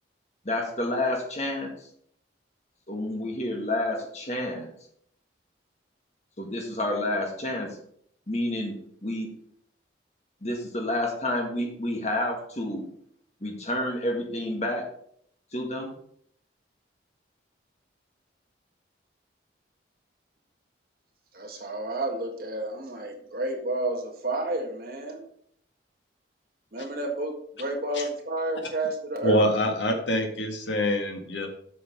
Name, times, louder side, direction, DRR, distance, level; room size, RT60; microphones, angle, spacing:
voice 1, 0.4-1.7 2.9-4.7 6.4-7.8 8.3-8.7 9.0-9.3 10.4-12.9 13.4-14.9 15.5-15.9, left 1 dB, 35° left, 1 dB, 1.9 m, -29 dB
voice 2, 21.3-25.2 26.7-27.3 27.6-29.4, right 1 dB, 50° right, 1 dB, 1.8 m, -30 dB
voice 3, 29.2-31.5, equal, 75° left, 3 dB, 1.7 m, -25 dB
7.9 x 5.6 x 5.3 m, 0.65 s
head